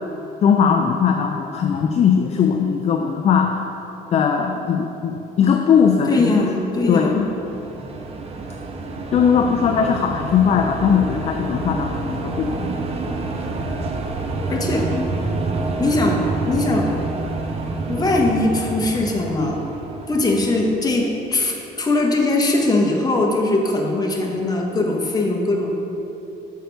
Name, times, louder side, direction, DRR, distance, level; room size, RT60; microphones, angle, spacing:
voice 1, 0.4-3.6 4.1-6.4 6.9-7.3 9.1-12.7, left 7 dB, 40° left, 4 dB, 0.4 m, -19 dB
voice 2, 6.1-7.2 14.5-15.1 15.8-16.2 16.5-17.1 17.9-19.6 20.1-25.8, left 2 dB, 20° left, 0 dB, 1.0 m, -21 dB
sound 1, 6.8-21.3, right 3 dB, 35° right, 0.7 m, -28 dB
6.5 x 4.5 x 5.3 m, 2.9 s
cardioid pair, 110°, 17 cm